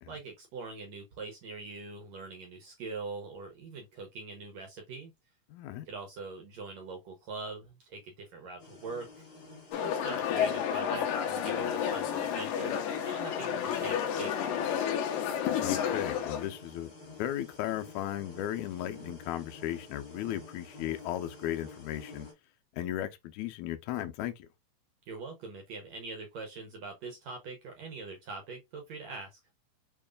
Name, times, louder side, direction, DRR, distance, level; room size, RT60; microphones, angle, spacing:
voice 1, 0.1-5.1 5.9-9.2 9.8-14.9 25.1-29.4, right 4 dB, 70° right, 1.7 m, -43 dB
voice 2, 5.5-5.8 15.6-22.3 22.7-24.5, left 12 dB, 90° left, 1.7 m, -36 dB
sound 1, 8.6-22.3, left 3 dB, 40° left, 2.3 m, -50 dB
sound 2, 9.7-16.5, left 8 dB, 75° left, 2.5 m, -31 dB
6.8 x 3.1 x 2.4 m
omnidirectional pair, 4.2 m